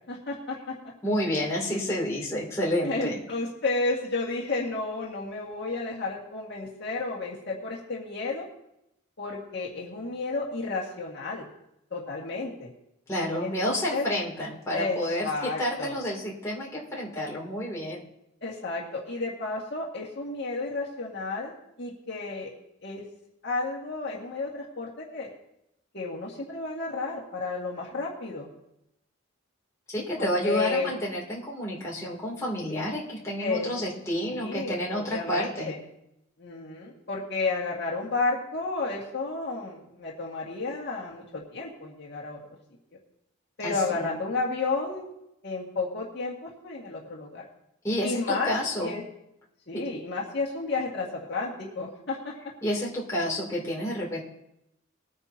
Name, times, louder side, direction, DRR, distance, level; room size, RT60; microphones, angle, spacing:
voice 1, 0.1-0.7 2.8-8.5 9.2-11.4 11.9-12.7 13.4-14.1 14.7-16.0 18.4-22.5 22.8-23.0 23.4-25.3 25.9-28.5 30.2-30.9 33.4-33.7 34.3-35.8 36.4-42.4 43.6-45.1 45.4-47.4 48.0-48.5 48.8-49.0 49.7-52.3, left 3 dB, 55° left, -3 dB, 1.9 m, -32 dB
voice 2, 1.0-3.2 13.1-18.0 29.9-35.7 43.6-44.1 47.8-49.0 49.7-49.8 52.6-54.2, equal, 15° left, -5 dB, 2.9 m, -30 dB
21.0 x 9.6 x 2.8 m, 0.83 s
head